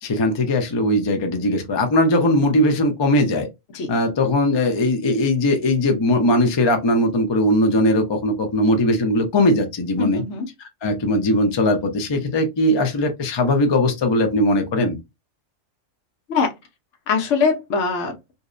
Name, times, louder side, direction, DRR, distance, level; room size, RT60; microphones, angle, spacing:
voice 1, 0.0-3.5 3.9-10.2 10.8-15.0, left 1 dB, 45° left, 0.3 m, -19 dB
voice 2, 10.0-10.5 16.3-16.5 17.1-18.2, left 5 dB, 70° left, 1.0 m, -22 dB
2.7 x 2.0 x 2.4 m
omnidirectional pair, 1.4 m